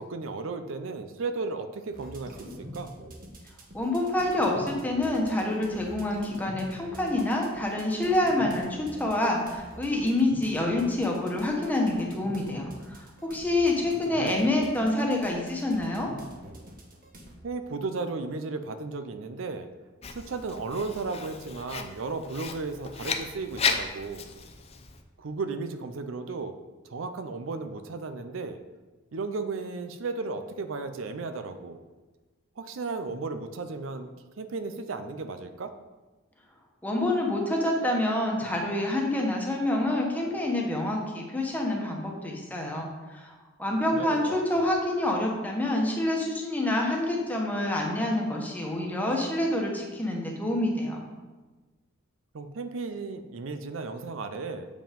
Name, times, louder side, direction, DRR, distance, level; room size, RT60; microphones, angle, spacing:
voice 1, 0.0-2.4 2.7-2.9 14.1-14.5 17.4-19.7 20.1-24.3 25.2-26.6 26.8-28.6 29.1-31.8 32.6-34.1 34.4-35.7 43.9-44.7 52.3-54.7, right 3 dB, 70° right, 9 dB, 0.5 m, -34 dB
sound 1, 1.9-17.3, equal, 45° right, 1.3 m, -45 dB
voice 2, 3.7-16.1 36.8-51.0, left 1 dB, 10° left, -1 dB, 1.3 m, -27 dB
Writing, 20.0-25.0, left 5 dB, 30° left, 0.6 m, -34 dB
7.5 x 5.1 x 5.2 m, 1.2 s
head